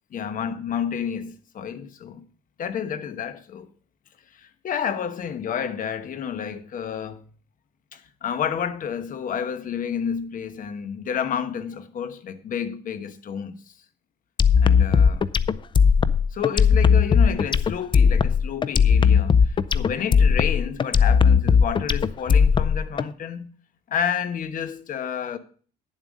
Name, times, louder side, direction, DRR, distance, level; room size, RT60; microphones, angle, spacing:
voice 1, 0.1-2.2 2.6-3.7 4.3-7.2 7.9-13.7 14.6-15.2 16.3-23.5 23.9-25.4, left 8 dB, 50° left, 1.2 m, -30 dB
sound 1, 14.4-23.0, left 6 dB, 30° left, 0.5 m, -18 dB
10.0 x 7.5 x 5.2 m
cardioid pair, 110°, 17 cm